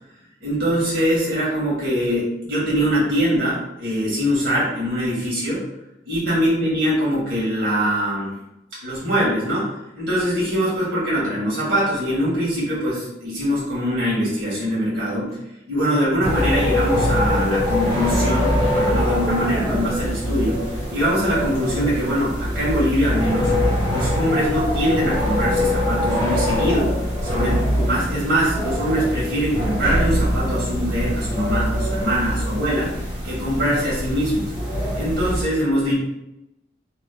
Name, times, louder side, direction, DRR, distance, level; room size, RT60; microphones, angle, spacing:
voice 1, 0.4-5.7 6.1-8.3 8.8-15.4 15.7-23.6 23.9-32.9 33.2-34.5 34.9-35.9, equal, 90° right, -7 dB, 1.4 m, -23 dB
sound 1, 16.2-35.4, left 1 dB, 30° right, 1.4 m, -23 dB
3.0 x 2.1 x 3.4 m, 0.91 s
head